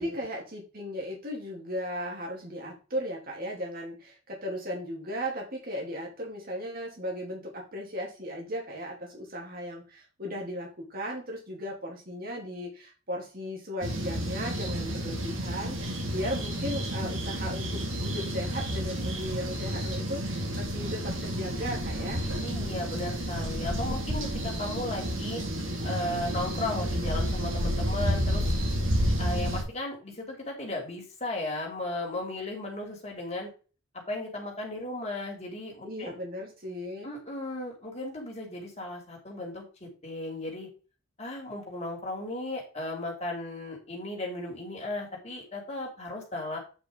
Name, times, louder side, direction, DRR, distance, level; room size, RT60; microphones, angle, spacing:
voice 1, 0.0-22.2 35.8-37.1, equal, 45° right, -1 dB, 2.7 m, -36 dB
sound 1, 13.8-29.6, equal, 70° right, 2.4 m, -30 dB
voice 2, 22.4-25.4 25.8-28.4 29.2-33.5 33.9-36.1 37.0-40.7 41.2-46.6, left 2 dB, 30° left, 0 dB, 2.8 m, -35 dB
8.8 x 5.2 x 3.8 m, 0.34 s
head